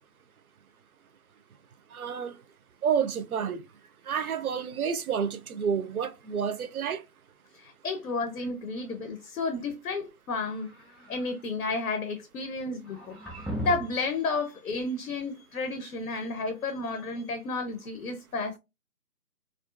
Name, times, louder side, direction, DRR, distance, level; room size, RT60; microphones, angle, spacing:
voice 1, 1.9-2.3 2.8-3.6 4.1-7.0, right 7 dB, 65° right, 0.5 m, -29 dB
voice 2, 7.5-10.7 11.1-13.2 13.5-18.6, left 3 dB, 70° left, 0.6 m, -32 dB
sound 1, 10.5-11.4 12.8-14.1, right 1 dB, ahead, 0.3 m, -38 dB
2.4 x 2.4 x 2.3 m
figure-of-eight pair, 155°, 47 cm